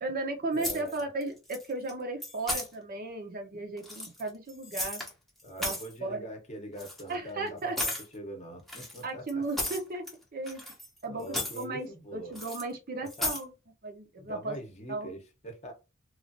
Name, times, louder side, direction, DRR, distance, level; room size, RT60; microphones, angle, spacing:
voice 1, 0.0-5.0 5.6-6.3 7.1-7.8 9.0-10.0 10.3-10.6 11.0-13.5 13.8-14.6 14.9-15.1, right 2 dB, 45° right, 0.7 m, -35 dB
voice 2, 0.5-1.1 5.4-9.4 11.1-12.4 13.2-13.3 14.2-15.7, equal, 30° left, 0.8 m, -43 dB
sound 1, 0.6-1.2 1.5-1.9 2.2-2.7 3.8-5.1 5.4-5.9 6.8-7.0 7.8-8.1 8.7-10.1 10.5-11.0 11.2-11.6 12.3-12.6 13.1-13.4, left 1 dB, ahead, 0.7 m, -34 dB
3.1 x 2.4 x 2.6 m
head